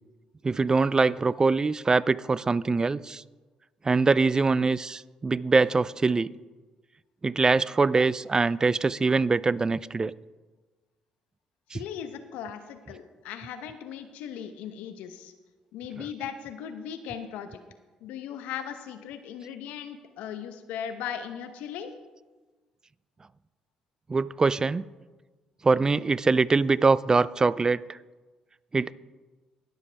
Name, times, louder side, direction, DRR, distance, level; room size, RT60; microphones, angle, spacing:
voice 1, 0.4-3.2 3.8-6.3 7.2-10.1 11.7-11.8 24.1-24.8 25.6-28.0 28.7-28.9, right 4 dB, 30° right, 20 dB, 0.3 m, -23 dB
voice 2, 11.7-15.3 15.7-17.6 18.0-21.9, left 8 dB, 80° left, 9 dB, 0.9 m, -38 dB
19.5 x 7.3 x 3.4 m, 1.3 s
supercardioid pair, 60°, 2 cm